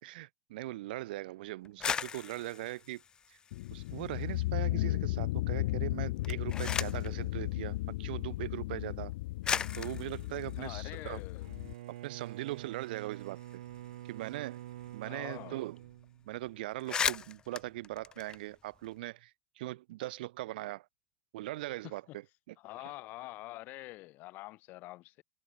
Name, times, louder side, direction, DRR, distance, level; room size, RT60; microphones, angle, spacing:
voice 1, 0.0-3.0 3.3-3.4 3.7-9.1 9.8-11.2 12.0-13.4 14.1-14.6 14.9-15.8 16.3-20.9 21.3-22.0 22.5-22.6, right 17 dB, 65° right, 3.4 m, -40 dB
sound 1, 1.6-4.2 4.6-5.3 6.1-7.2 8.2-8.3 9.0-9.1 9.4-11.8 12.1-12.2 12.5-15.1 15.3-15.5 15.8-16.0 16.4-16.5 16.7-18.9, left 7 dB, 15° left, 0.9 m, -38 dB
sound 2, 3.5-11.7, left 18 dB, 65° left, 0.5 m, -35 dB
voice 2, 10.6-11.5 15.1-15.6 21.8-22.2 22.6-25.2, left 19 dB, 35° left, 2.9 m, -46 dB
Bowed string instrument, 11.4-16.7, right 14 dB, 90° right, 2.6 m, -47 dB
supercardioid pair, 170°, 5 cm